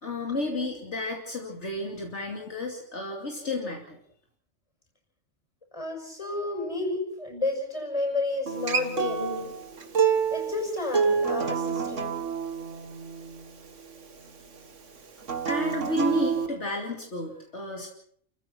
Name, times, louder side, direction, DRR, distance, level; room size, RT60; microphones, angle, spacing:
voice 1, 0.0-4.0 15.5-17.9, left 2 dB, 65° left, 0 dB, 3.0 m, -32 dB
voice 2, 5.7-9.5 10.3-12.1, left 2 dB, 25° left, 3 dB, 6.5 m, -31 dB
Acoustic guitar, 8.5-13.7 15.2-16.5, right 6 dB, 75° right, 2.0 m, -28 dB
29.5 x 15.0 x 6.0 m, 0.65 s
omnidirectional pair, 1.3 m